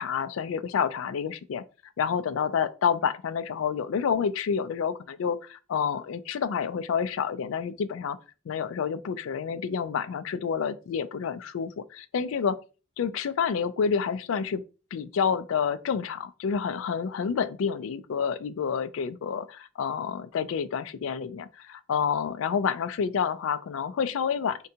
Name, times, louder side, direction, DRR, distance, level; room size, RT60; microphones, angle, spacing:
voice 1, 0.0-1.6 2.0-8.2 8.5-12.6 13.0-14.6 14.9-24.7, left 6 dB, 75° left, 0.3 m, -29 dB
3.7 x 2.2 x 2.7 m
head